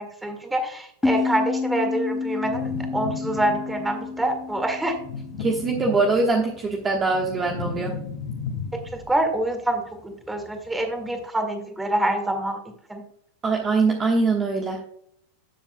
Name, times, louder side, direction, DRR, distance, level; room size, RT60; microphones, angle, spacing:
voice 1, 0.0-5.0 8.7-12.6 12.9-13.0, right 1 dB, 10° right, 5 dB, 2.0 m, -26 dB
sound 1, 1.0-6.4, left 4 dB, 10° left, 1.0 m, -29 dB
sound 2, 2.4-4.0 5.0-6.5 6.8-9.2, left 5 dB, 70° left, 2.2 m, -34 dB
voice 2, 5.4-8.0 13.4-14.8, right 3 dB, 25° right, 1 dB, 1.3 m, -23 dB
12.0 x 7.4 x 2.2 m, 0.68 s
hypercardioid pair, 115°, 0 cm